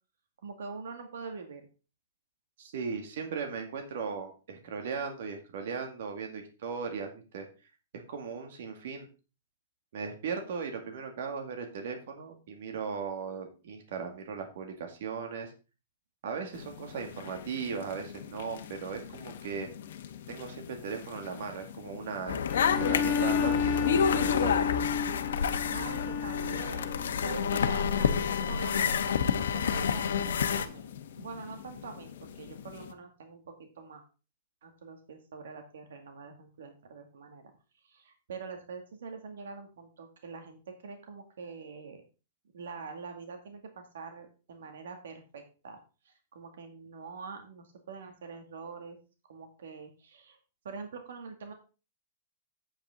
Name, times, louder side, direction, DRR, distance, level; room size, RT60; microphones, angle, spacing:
voice 1, 0.4-1.6 25.7-28.2 28.5-30.9 31.1-34.0 34.6-37.4 37.8-42.0 42.5-45.8 46.0-49.0 49.3-50.4 50.6-51.5, right 5 dB, 80° right, 5 dB, 2.1 m, -44 dB
voice 2, 2.6-7.5 8.1-9.1 9.9-15.5 16.2-19.7 20.3-22.5 22.8-24.6, right 5 dB, 60° right, 3 dB, 2.2 m, -37 dB
sound 1, 16.5-32.9, left 9 dB, 60° left, 1.2 m, -47 dB
sound 2, 22.3-30.7, left 7 dB, 90° left, 1.0 m, -28 dB
Bowed string instrument, 22.5-27.2, left 6 dB, 20° left, 0.4 m, -32 dB
8.7 x 8.2 x 3.8 m, 0.32 s
hypercardioid pair, 165°, 0 cm